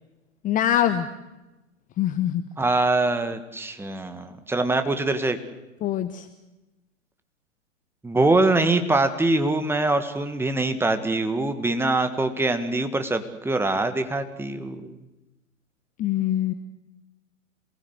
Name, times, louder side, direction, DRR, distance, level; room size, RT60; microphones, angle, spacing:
voice 1, 0.4-1.1 2.0-2.4 5.8-6.3 16.0-16.5, left 11 dB, 20° left, 11 dB, 1.0 m, -23 dB
voice 2, 2.6-5.4 8.0-15.0, right 2 dB, 5° right, 8 dB, 1.8 m, -23 dB
27.5 x 19.5 x 8.1 m, 1.0 s
figure-of-eight pair, 110°, 40 cm